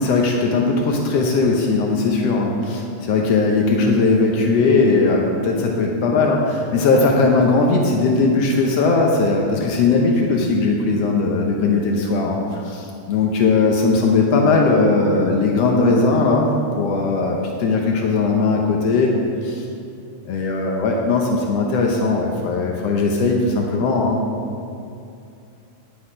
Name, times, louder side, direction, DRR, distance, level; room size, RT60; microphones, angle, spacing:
voice 1, 0.0-19.1 19.4-19.6 20.2-24.2, left 3 dB, 85° left, 0 dB, 1.4 m, -18 dB
9.5 x 8.6 x 5.0 m, 2.5 s
omnidirectional pair, 4.0 m